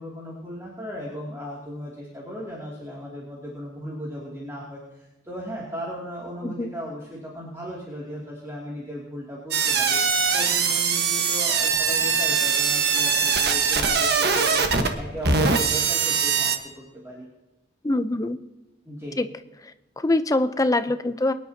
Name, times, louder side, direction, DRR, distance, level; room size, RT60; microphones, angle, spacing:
voice 1, 0.0-17.3 18.8-19.2, equal, 15° right, -5 dB, 2.5 m, -37 dB
voice 2, 6.4-6.8 17.8-18.4 19.2-19.3 19.6-21.3, left 2 dB, 20° left, 11 dB, 0.6 m, -24 dB
sound 1, 9.5-16.6, right 5 dB, 60° right, 1.3 m, -22 dB
23.5 x 10.5 x 2.8 m, 1.1 s
head